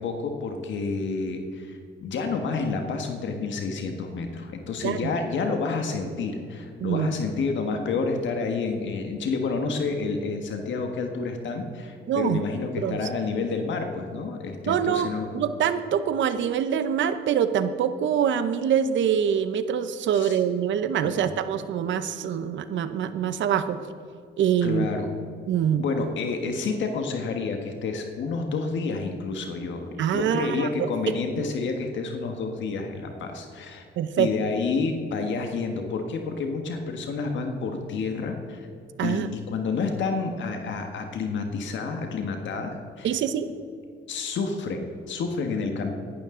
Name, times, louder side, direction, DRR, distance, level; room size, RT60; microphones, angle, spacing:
voice 1, 0.0-15.3 20.1-20.4 21.0-21.3 24.6-25.1 25.8-33.9 34.2-38.7 39.0-43.1 44.1-45.9, left 4 dB, 70° left, 4 dB, 1.5 m, -29 dB
voice 2, 12.1-12.4 12.8-13.0 14.7-23.8 24.4-24.9 25.5-25.8 30.0-31.1 34.0-34.3 39.0-39.3 43.0-43.5, right 8 dB, 70° right, 11 dB, 0.9 m, -25 dB
17.0 x 12.0 x 3.8 m, 2.4 s
cardioid pair, 90°, 20 cm